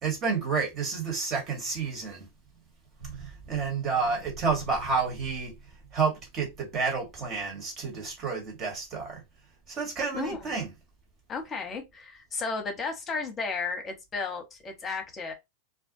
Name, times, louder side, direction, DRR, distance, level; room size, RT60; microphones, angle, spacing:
voice 1, 0.0-2.3 3.0-5.5 5.9-9.2 9.7-10.7, right 5 dB, 35° right, 1.4 m, -30 dB
voice 2, 10.1-10.5 11.3-15.3, left 4 dB, 25° left, 0.9 m, -34 dB
2.5 x 2.1 x 2.7 m
figure-of-eight pair, 90°, 0 cm